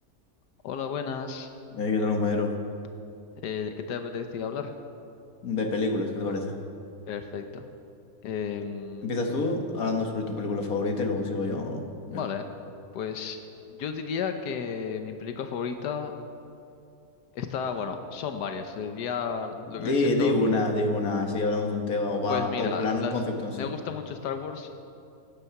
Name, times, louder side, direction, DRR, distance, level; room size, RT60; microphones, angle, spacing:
voice 1, 0.6-1.5 3.4-4.7 7.1-7.7 8.2-9.1 12.1-12.5 12.9-13.4 13.7-16.1 17.3-20.4 22.3-23.2 23.5-24.7, left 6 dB, 90° left, 7 dB, 1.4 m, -33 dB
voice 2, 1.7-2.5 5.4-6.6 9.0-12.2 19.8-23.7, left 3 dB, 60° left, 3 dB, 1.8 m, -27 dB
16.5 x 10.0 x 5.9 m, 2.5 s
omnidirectional pair, 1.7 m